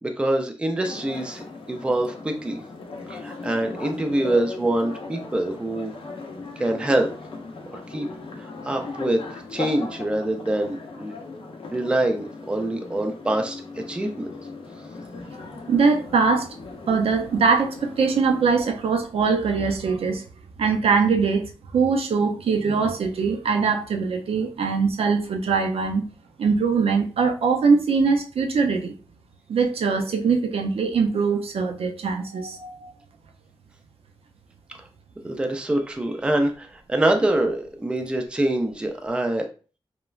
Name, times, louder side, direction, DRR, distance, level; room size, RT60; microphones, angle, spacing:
voice 1, 0.0-2.6 3.1-5.9 6.6-7.1 7.9-9.2 9.5-11.1 11.7-13.6 13.9-14.3 34.7-34.8 35.2-39.5, right 1 dB, 10° right, 0.3 m, -25 dB
sound 1, 0.8-18.6, left 3 dB, 65° left, 0.5 m, -38 dB
voice 2, 15.7-16.5 16.9-20.2 20.6-21.4 21.7-26.0 26.4-28.9 29.5-32.9, right 5 dB, 80° right, 0.5 m, -22 dB
3.0 x 2.1 x 2.3 m
wide cardioid pair, 130°, 10 cm